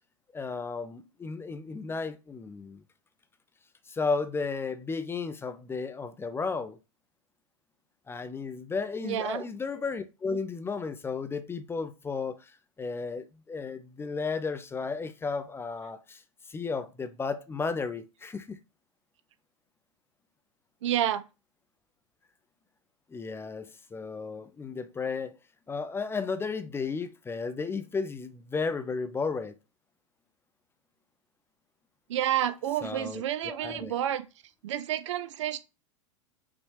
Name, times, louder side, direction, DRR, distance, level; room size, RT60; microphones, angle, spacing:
voice 1, 0.3-2.8 3.9-6.8 8.1-12.5 12.8-16.2 16.5-18.6 23.1-25.4 25.7-29.5 32.7-34.0, left 4 dB, 15° left, 0.5 m, -34 dB
voice 2, 9.0-9.4 20.8-21.2 32.1-34.3 34.6-35.6, right 11 dB, 65° right, 0.6 m, -29 dB
5.2 x 3.0 x 3.2 m
figure-of-eight pair, 90°, 17 cm